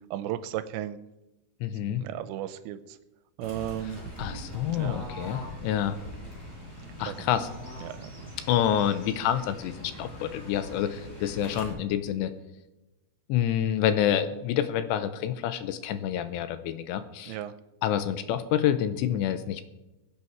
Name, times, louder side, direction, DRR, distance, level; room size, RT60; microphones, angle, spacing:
voice 1, 0.1-1.0 1.8-2.8 3.4-4.0 4.8-5.0 7.1-7.2 7.8-8.1 17.3-17.5, right 12 dB, 85° right, 12 dB, 2.8 m, -34 dB
voice 2, 1.6-2.1 4.2-6.0 7.0-7.5 8.5-12.3 13.3-17.3 17.8-19.6, left 10 dB, 85° left, 10 dB, 2.9 m, -28 dB
Fowl / Bird, 3.4-11.7, left 1 dB, 15° left, 6.5 m, -42 dB
22.0 x 8.5 x 4.7 m, 0.99 s
omnidirectional pair, 5.2 m